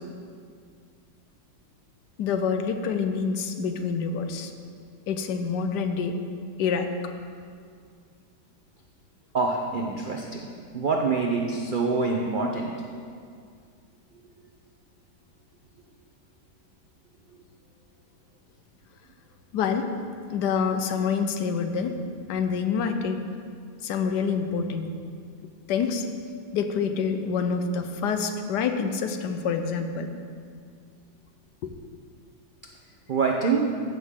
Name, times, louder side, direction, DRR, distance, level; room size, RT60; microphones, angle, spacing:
voice 1, 2.2-4.5 5.1-6.2 6.6-6.9 19.5-19.9 20.3-22.0 22.3-23.3 23.8-24.9 25.7-26.1 26.5-30.1 31.6-31.7, left 6 dB, 85° left, 7 dB, 1.3 m, -27 dB
voice 2, 9.3-10.5 10.7-12.7 33.1-33.7, right 4 dB, 65° right, 0 dB, 0.5 m, -25 dB
14.5 x 6.4 x 3.7 m, 2.2 s
omnidirectional pair, 1.8 m